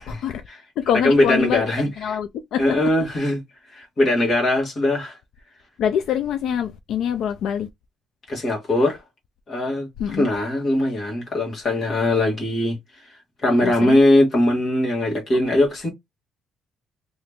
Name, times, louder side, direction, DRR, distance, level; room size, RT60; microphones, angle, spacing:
voice 1, 0.0-0.4 0.8-2.7 5.8-7.7 10.0-10.3 13.6-14.0, left 9 dB, 65° left, 0.3 m, -25 dB
voice 2, 1.0-2.1 2.6-3.4 3.7-5.2 8.3-9.0 9.5-12.8 13.4-15.9, left 1 dB, 30° left, 1.4 m, -20 dB
2.9 x 2.5 x 3.4 m
cardioid pair, 175°, 0 cm